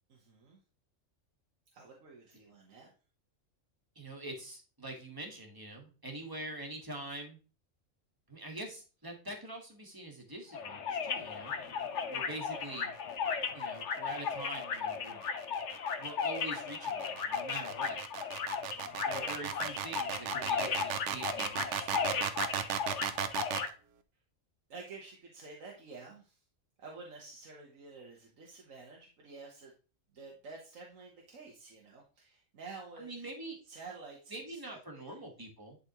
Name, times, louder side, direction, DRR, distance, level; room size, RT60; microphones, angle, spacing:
voice 1, 0.1-0.6 1.7-2.9 18.6-19.1 24.7-26.4 26.8-29.7 30.1-33.3 33.7-35.3, right 4 dB, 85° right, -1 dB, 1.6 m, -50 dB
voice 2, 3.9-7.4 8.3-11.5 12.1-12.9 13.5-15.2 16.0-18.0 19.0-22.2 33.0-33.6 34.3-35.8, right 1 dB, 15° right, 1 dB, 1.6 m, -44 dB
sound 1, 10.5-23.7, left 6 dB, 65° left, 1.2 m, -36 dB
sound 2, 14.4-23.7, right 8 dB, 70° right, 1.0 m, -36 dB
11.0 x 4.2 x 3.0 m, 0.35 s
omnidirectional pair, 1.3 m